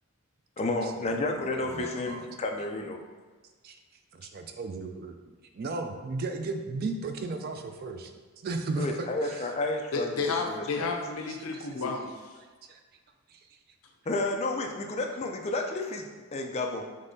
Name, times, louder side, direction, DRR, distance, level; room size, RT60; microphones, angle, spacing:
voice 1, 0.6-3.0 8.7-10.1 10.5-10.9 11.7-11.9 14.1-16.9, left 2 dB, 30° left, 2 dB, 0.4 m, -31 dB
voice 2, 1.7-2.3 3.6-3.8 4.1-5.2 5.5-8.1 8.4-9.5 12.7-12.8 13.3-13.4, right 3 dB, 45° right, 6 dB, 0.3 m, -35 dB
voice 3, 9.9-12.1, left 4 dB, 80° left, 3 dB, 0.6 m, -31 dB
5.3 x 3.2 x 2.7 m, 1.4 s
head